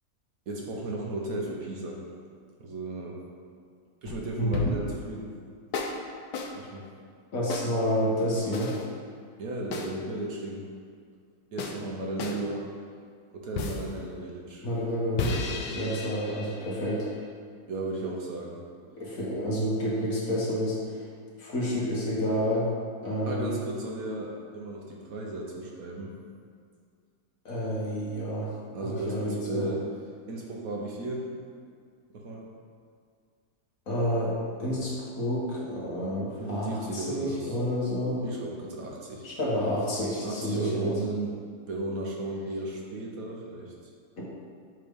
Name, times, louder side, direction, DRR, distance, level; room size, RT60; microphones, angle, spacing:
voice 1, 0.5-2.0 2.6-3.2 4.0-5.3 6.5-6.9 9.4-10.7 11.5-12.7 13.3-14.6 17.7-18.6 23.3-26.1 28.7-29.9 30.3-31.3 32.1-32.4 36.4-37.6 38.2-39.3 40.2-41.3 41.7-43.7, right 2 dB, 65° right, -2 dB, 1.2 m, -35 dB
sound 1, 4.0-5.0 5.7-6.0 6.3-6.5 7.5-7.7 8.5-8.9 9.7-9.9 11.6-11.8 12.2-12.4 13.5-13.9 15.2-17.3, left 4 dB, 85° left, 1.3 m, -34 dB
voice 2, 4.4-4.8 7.3-8.8 14.6-17.1 19.0-21.1 21.4-22.7 23.0-23.6 27.5-28.5 28.8-29.7 33.9-38.2 39.2-40.9 44.2-44.3, equal, 55° left, -6 dB, 1.8 m, -29 dB
7.7 x 3.3 x 5.3 m, 2.1 s
omnidirectional pair, 1.7 m